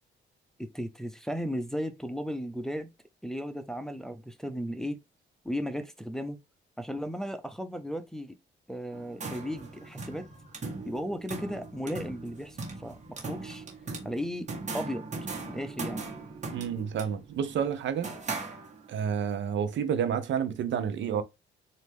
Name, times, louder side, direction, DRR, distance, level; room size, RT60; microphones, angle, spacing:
voice 1, 0.6-2.9 3.2-5.0 5.4-6.4 6.8-8.4 8.7-10.3 10.8-13.6 14.0-14.5 14.7-15.1 15.5-16.1, equal, ahead, 0.6 m, -35 dB
sound 1, 8.9-19.1, right 3 dB, 35° right, 1.6 m, -39 dB
voice 2, 16.5-18.1 18.9-21.2, right 8 dB, 70° right, 0.8 m, -30 dB
4.3 x 2.7 x 3.4 m
cardioid pair, 90°, 20 cm